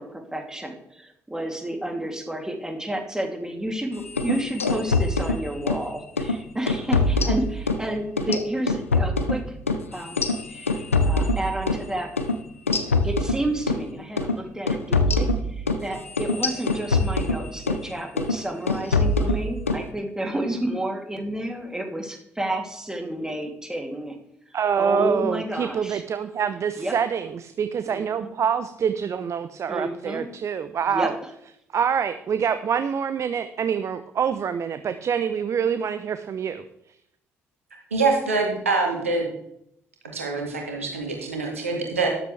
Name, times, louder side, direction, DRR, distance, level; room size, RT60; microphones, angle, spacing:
voice 1, 0.0-9.6 9.9-12.1 13.0-24.2 24.8-26.0 26.8-27.0 27.9-28.3 29.7-30.3 30.9-31.1, right 1 dB, 10° right, 2 dB, 2.9 m, -31 dB
sound 1, 4.1-5.8 6.2-6.4 6.7-7.8 8.2-11.9 12.2-12.3 12.7-13.8 14.2-14.4 14.7-17.8 18.2-18.4 18.7-19.8, left 3 dB, 85° left, 0.6 m, -24 dB
voice 2, 24.5-31.1 31.7-36.6, right 7 dB, 45° right, 11 dB, 0.7 m, -26 dB
voice 3, 37.9-39.3 40.1-42.1, right 3 dB, 85° right, 0 dB, 2.1 m, -25 dB
13.0 x 12.0 x 3.4 m, 0.76 s
figure-of-eight pair, 45°, 7 cm